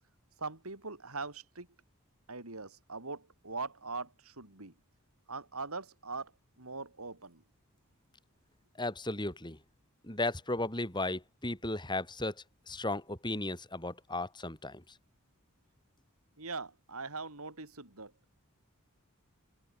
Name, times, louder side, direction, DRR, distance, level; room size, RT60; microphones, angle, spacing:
voice 1, 0.4-1.7 2.3-4.7 5.3-6.3 6.6-7.4 16.4-18.1, right 3 dB, 80° right, 4.2 m, -41 dB
voice 2, 8.8-9.6 10.0-12.3 12.7-14.8, left 2 dB, 20° left, 5.4 m, -35 dB
open air
head